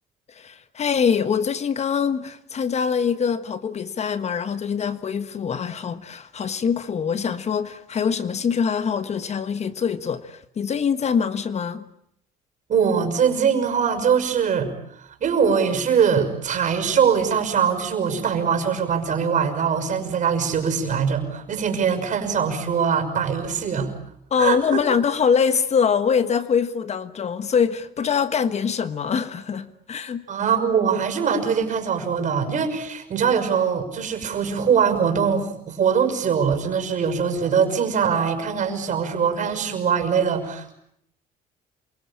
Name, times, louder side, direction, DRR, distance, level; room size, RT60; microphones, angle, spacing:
voice 1, 0.3-11.8 24.3-30.3, left 6 dB, 40° left, 1.4 m, -24 dB
voice 2, 12.7-14.7 15.2-23.9 24.4-24.8 30.3-40.7, right 7 dB, 50° right, 5.9 m, -22 dB
28.0 x 24.5 x 8.7 m
cardioid pair, 110°, 17 cm